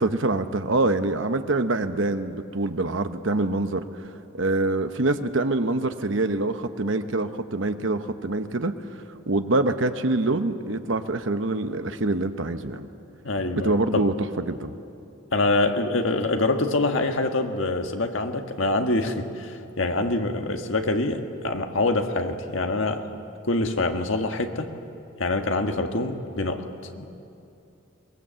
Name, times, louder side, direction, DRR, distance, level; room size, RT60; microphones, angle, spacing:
voice 1, 0.0-3.8 4.3-8.7 9.3-12.8 13.5-14.7, right 2 dB, 70° right, 8 dB, 1.1 m, -25 dB
voice 2, 13.3-14.1 15.3-23.0 23.4-24.7 25.2-26.7 26.9-27.0, left 2 dB, 70° left, 5 dB, 1.6 m, -25 dB
23.0 x 20.5 x 7.7 m, 2.7 s
head